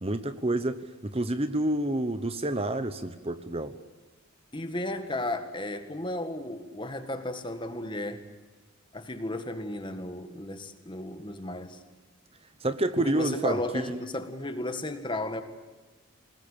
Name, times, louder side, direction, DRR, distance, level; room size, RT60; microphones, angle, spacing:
voice 1, 0.0-3.7 12.6-14.0, right 1 dB, 25° right, 11 dB, 1.0 m, -29 dB
voice 2, 4.5-8.2 8.9-11.8 13.0-15.4, left 1 dB, 20° left, 8 dB, 1.8 m, -34 dB
28.0 x 19.5 x 8.9 m, 1.3 s
head